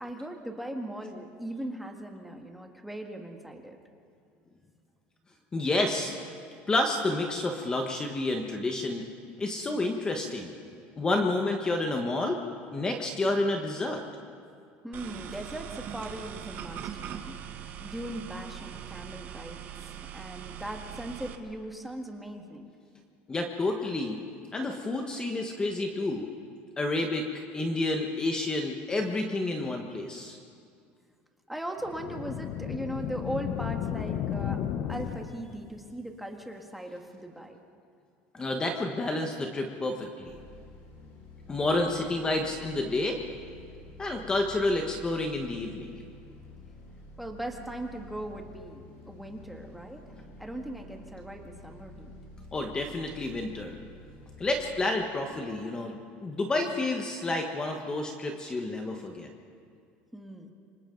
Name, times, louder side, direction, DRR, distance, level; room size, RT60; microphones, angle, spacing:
voice 1, 0.0-3.8 14.8-17.5 17.8-22.7 31.5-37.6 47.2-52.1 60.1-60.5, right 1 dB, ahead, 2 dB, 1.8 m, -39 dB
voice 2, 5.5-6.1 6.7-9.0 9.4-10.5 11.0-12.4 12.7-14.0 23.3-24.2 24.5-26.3 26.8-27.3 27.5-30.4 38.3-40.4 41.5-43.2 44.0-45.9 52.5-53.8 54.4-59.3, left 2 dB, 20° left, 3 dB, 1.4 m, -29 dB
sound 1, 14.9-21.4, right 9 dB, 45° right, 1.4 m, -41 dB
sound 2, 31.9-35.7, left 9 dB, 55° left, 0.9 m, -33 dB
sound 3, 40.3-54.9, left 1 dB, 80° left, 6.8 m, -49 dB
28.0 x 25.5 x 4.0 m, 2.3 s
cardioid pair, 145°, 4 cm